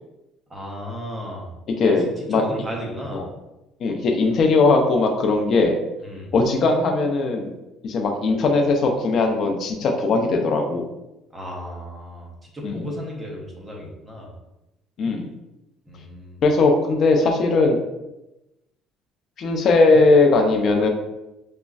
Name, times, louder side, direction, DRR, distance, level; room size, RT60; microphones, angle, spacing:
voice 1, 0.5-1.5 1.8-3.3 6.0-6.3 11.3-14.3 15.9-16.4, equal, 10° right, -2 dB, 0.8 m, -34 dB
voice 2, 1.8-2.4 3.1-3.2 3.8-5.8 6.3-7.5 7.8-10.8 12.6-12.8 15.0-15.3 16.4-17.8 19.4-20.9, left 3 dB, 40° left, 3 dB, 0.5 m, -19 dB
5.0 x 2.2 x 2.3 m, 0.95 s
cardioid pair, 155°, 0 cm